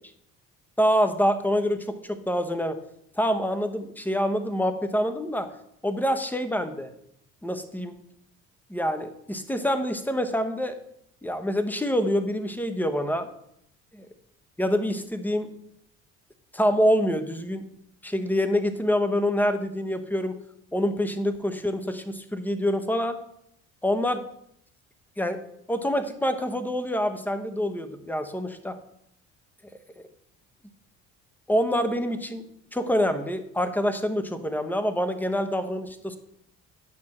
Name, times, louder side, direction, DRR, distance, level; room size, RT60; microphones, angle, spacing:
voice 1, 0.8-2.8 3.2-5.5 5.8-6.9 7.4-7.9 8.7-10.8 11.2-13.3 13.9-14.1 14.6-15.5 16.5-17.7 18.0-20.4 20.7-23.2 23.8-24.2 25.2-25.4 25.7-28.8 31.5-32.4 32.7-36.2, equal, 5° left, 9 dB, 1.0 m, -26 dB
9.3 x 6.1 x 4.4 m, 0.73 s
supercardioid pair, 75°, 32 cm